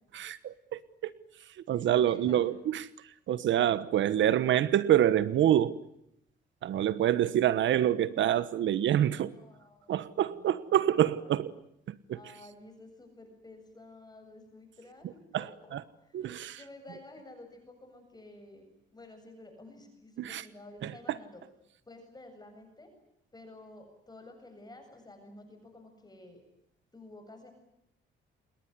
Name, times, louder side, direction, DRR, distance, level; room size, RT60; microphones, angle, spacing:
voice 1, 0.1-1.1 1.4-5.8 6.6-9.3 9.9-11.5 11.9-12.2 15.3-15.8 16.1-16.6 20.2-20.4 20.8-21.2, right 11 dB, 70° right, 16 dB, 1.2 m, -27 dB
voice 2, 1.7-2.5 9.0-10.7 11.0-11.3 12.1-15.7 16.0-18.6 18.9-21.4 21.9-22.9 23.3-26.4 26.9-27.5, left 2 dB, 20° left, 6 dB, 7.6 m, -52 dB
28.0 x 21.5 x 9.7 m, 0.78 s
cardioid pair, 90°, 20 cm